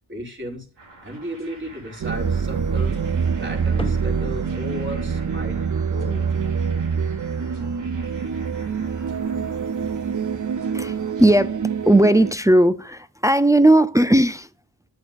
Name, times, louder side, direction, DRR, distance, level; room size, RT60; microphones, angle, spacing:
voice 1, 0.1-0.7 1.0-5.6 5.9-6.3, equal, 30° right, 4.2 m, -35 dB
sound 1, 0.8-11.4, right 2 dB, 85° right, 3.9 m, -48 dB
sound 2, 2.0-12.3, right 6 dB, 45° right, 0.8 m, -25 dB
sound 3, 3.8-10.5, left 2 dB, 15° left, 1.3 m, -44 dB
voice 2, 10.7-11.6 11.9-14.5, right 1 dB, 10° right, 0.6 m, -17 dB
9.2 x 8.4 x 2.6 m
supercardioid pair, 40°, 42 cm